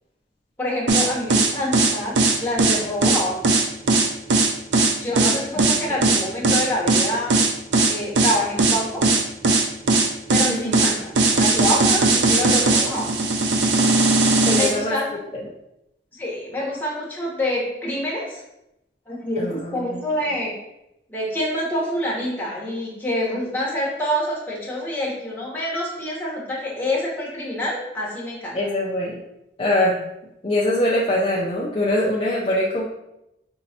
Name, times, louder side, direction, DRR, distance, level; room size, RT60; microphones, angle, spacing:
voice 1, 0.6-3.7 4.9-7.4 7.9-9.0 10.3-13.4 14.5-15.2 16.1-18.4 19.1-20.5 21.1-28.6, left 1 dB, 10° left, -5 dB, 1.1 m, -27 dB
sound 1, 0.9-14.7, right 3 dB, 80° right, 0.6 m, -18 dB
voice 2, 14.5-15.0 19.4-20.0 28.5-29.1 29.6-30.0 30.4-32.8, left 1 dB, 30° left, -5 dB, 0.5 m, -23 dB
5.3 x 3.1 x 2.8 m, 0.86 s
head